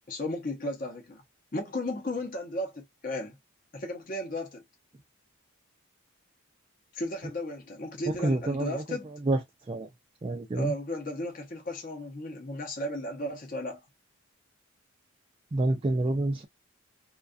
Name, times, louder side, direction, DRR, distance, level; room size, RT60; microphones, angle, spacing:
voice 1, 0.1-1.2 1.5-3.4 3.7-4.6 6.9-9.1 10.5-13.8, left 1 dB, 40° left, 0.7 m, -35 dB
voice 2, 8.2-8.8 9.3-9.4 9.7-9.9 10.2-10.7 15.5-16.4, right 2 dB, 25° right, 0.3 m, -27 dB
2.5 x 2.3 x 2.3 m
head